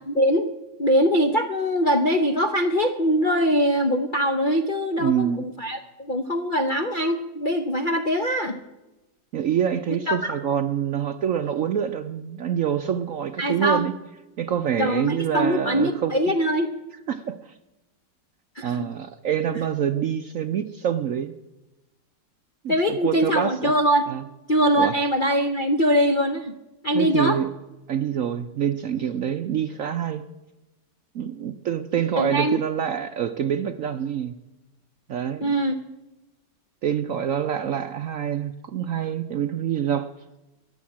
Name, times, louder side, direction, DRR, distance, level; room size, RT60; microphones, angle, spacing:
voice 1, 0.1-0.5 0.8-8.6 10.1-10.4 13.4-13.9 14.8-16.7 18.5-18.9 22.7-24.1 24.5-26.5 26.8-27.4 32.2-32.6 35.4-35.8, equal, 55° left, 6 dB, 0.5 m, -22 dB
voice 2, 5.0-5.5 9.3-13.9 14.4-16.1 17.1-17.6 18.6-21.3 22.6-23.7 24.1-24.2 24.8-24.9 26.9-27.5 27.9-30.2 31.1-34.3 35.1-35.5 36.8-40.1, right 9 dB, 65° right, 9 dB, 0.8 m, -26 dB
13.5 x 10.5 x 8.5 m, 1.0 s
omnidirectional pair, 2.0 m